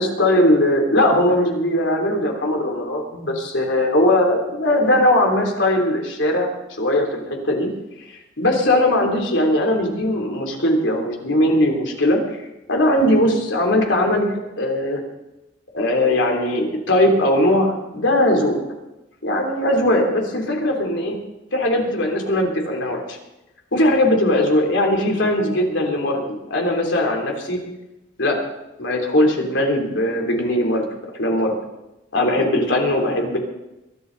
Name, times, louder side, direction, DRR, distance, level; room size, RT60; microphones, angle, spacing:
voice 1, 0.0-6.5 6.8-7.7 8.1-12.4 12.7-15.0 15.7-18.6 19.2-21.2 21.5-23.2 23.7-27.6 28.2-28.4 28.8-30.9 31.1-31.5 32.1-33.4, left 1 dB, 75° left, 1 dB, 3.4 m, -19 dB
22.0 x 11.5 x 4.0 m, 0.96 s
head